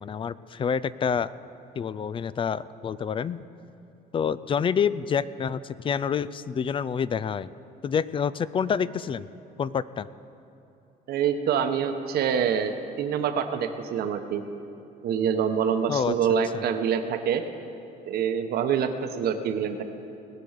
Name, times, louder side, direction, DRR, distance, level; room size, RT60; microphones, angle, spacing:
voice 1, 0.0-1.3 1.8-3.4 4.1-7.5 7.8-9.3 9.6-10.1 15.9-16.1 16.5-16.6, left 7 dB, 30° left, 17 dB, 0.4 m, -27 dB
voice 2, 11.1-14.4 15.0-17.4 18.1-19.8, right 7 dB, 70° right, 7 dB, 1.0 m, -26 dB
19.5 x 7.0 x 6.5 m, 2.9 s
cardioid pair, 110°, 17 cm